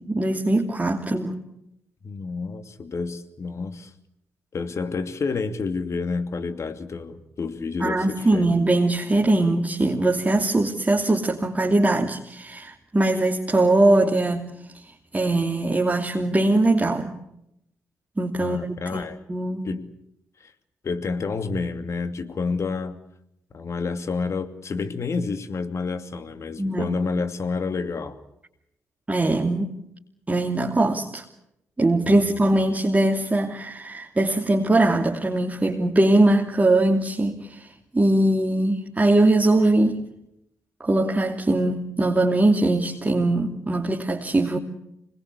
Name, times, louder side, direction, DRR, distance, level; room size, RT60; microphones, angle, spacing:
voice 1, 0.0-1.3 7.8-14.5 15.1-17.2 18.2-18.6 18.9-19.0 19.3-19.7 26.6-26.9 29.1-29.8 30.3-31.2 31.8-37.7 37.9-40.0 40.8-44.6, right 2 dB, 25° right, 0 dB, 2.8 m, -21 dB
voice 2, 2.0-3.9 4.5-8.5 18.4-19.2 19.6-19.9 20.4-20.5 20.8-23.0 23.5-28.2 32.0-32.4, left 4 dB, 45° left, 9 dB, 2.6 m, -29 dB
26.0 x 20.5 x 8.3 m, 0.80 s
hypercardioid pair, 40°, 7 cm